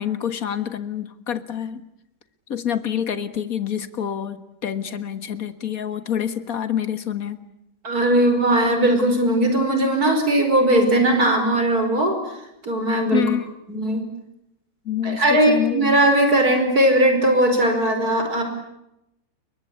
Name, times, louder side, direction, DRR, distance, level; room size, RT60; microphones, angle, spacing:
voice 1, 0.0-1.8 2.5-7.4 13.1-13.5 14.9-16.0, left 9 dB, 55° left, 11 dB, 2.0 m, -27 dB
voice 2, 7.8-12.2 12.6-13.2 13.7-14.1 15.0-18.4, right 1 dB, 60° right, 6 dB, 5.7 m, -19 dB
29.0 x 23.0 x 8.4 m, 0.85 s
omnidirectional pair, 1.8 m